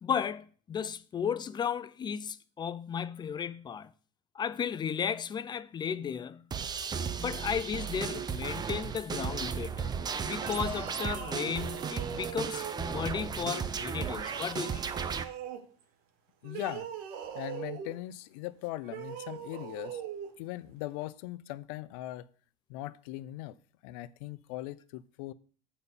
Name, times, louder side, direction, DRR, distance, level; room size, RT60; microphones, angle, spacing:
voice 1, 0.0-3.9 4.3-6.5 7.2-9.9 10.2-14.8, left 7 dB, 25° left, 0.5 m, -34 dB
sound 1, 6.5-15.2, right 6 dB, 25° right, 0.6 m, -35 dB
sound 2, 10.3-13.1 14.1-15.7 16.4-18.0 18.8-20.3, right 9 dB, 65° right, 1.2 m, -41 dB
voice 2, 16.4-16.9 17.3-20.0 20.4-22.3 22.7-23.6 23.8-25.3, left 16 dB, 75° left, 0.6 m, -39 dB
7.9 x 4.3 x 7.0 m
supercardioid pair, 110°, 17 cm